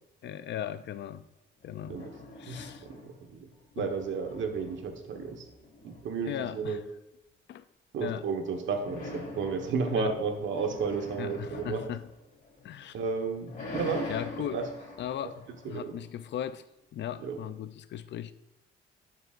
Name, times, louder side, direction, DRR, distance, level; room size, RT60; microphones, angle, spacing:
voice 1, 0.2-1.3 1.6-2.0 2.4-2.9 3.8-3.9 6.3-6.8 7.5-7.6 8.0-8.2 9.9-10.1 11.2-12.1 12.6-13.0 14.1-14.6 15.0-16.6 16.9-18.3, left 10 dB, 65° left, 14 dB, 0.5 m, -37 dB
sound 1, 1.6-3.3 3.6-6.4 8.7-12.8 13.2-16.3, left 3 dB, 40° left, 3.4 m, -44 dB
voice 2, 2.5-3.5 3.7-5.5 5.8-6.8 7.9-11.8 12.9-14.1 14.4-14.6 15.6-16.0 17.2-17.4, right 5 dB, 70° right, 4 dB, 1.5 m, -32 dB
12.0 x 8.2 x 2.6 m, 0.93 s
cardioid pair, 90°, 20 cm